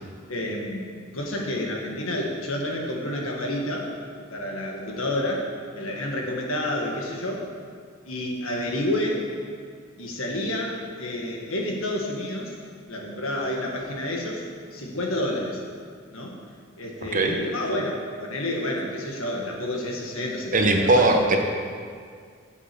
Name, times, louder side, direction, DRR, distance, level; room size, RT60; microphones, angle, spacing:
voice 1, 0.3-3.9 4.3-5.5 5.7-7.5 8.0-9.3 10.0-12.5 12.9-14.4 14.7-15.6 16.1-16.4 16.8-21.4, left 1 dB, 75° left, 0 dB, 1.6 m, -29 dB
voice 2, 17.0-17.4 20.5-21.4, right 2 dB, 40° right, 3 dB, 1.0 m, -19 dB
7.7 x 7.4 x 6.8 m, 2.1 s
head